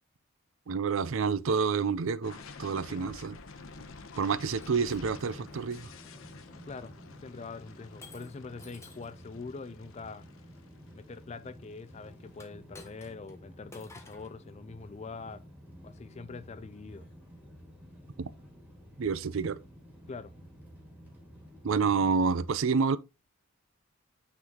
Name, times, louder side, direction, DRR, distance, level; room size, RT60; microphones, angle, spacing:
voice 1, 0.7-3.4 4.2-5.9 18.2-18.3 19.0-19.6 21.6-23.0, right 5 dB, 70° right, 0.5 m, -28 dB
sound 1, 2.2-12.0, left 4 dB, 70° left, 0.8 m, -50 dB
Shatter, 4.5-5.8 6.5-6.8 8.0-9.2 12.3-13.4 13.7-14.3, left 3 dB, 15° left, 1.0 m, -53 dB
sound 2, 4.7-22.4, equal, 10° right, 2.0 m, -52 dB
voice 2, 7.2-10.3 10.9-15.5 15.8-17.1 20.1-20.3, left 4 dB, 30° left, 0.4 m, -44 dB
9.3 x 3.9 x 2.9 m
head